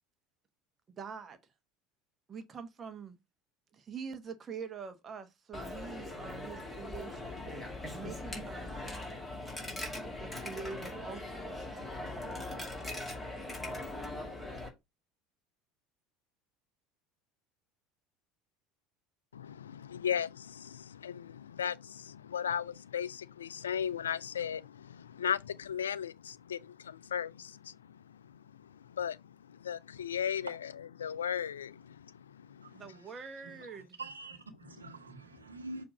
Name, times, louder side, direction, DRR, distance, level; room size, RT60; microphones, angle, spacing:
voice 1, 1.0-1.4 2.3-3.2 3.7-7.4 7.9-9.0 10.2-11.5 32.7-34.0, right 5 dB, 30° right, 1.1 m, -45 dB
Coin (dropping), 5.5-14.7, left 1 dB, 10° left, 2.4 m, -41 dB
voice 2, 19.3-32.8, left 8 dB, 75° left, 0.3 m, -37 dB
voice 3, 32.6-33.0 33.4-33.6 34.0-35.8, right 2 dB, 80° right, 1.2 m, -46 dB
7.0 x 2.8 x 5.2 m
figure-of-eight pair, 70°, 0 cm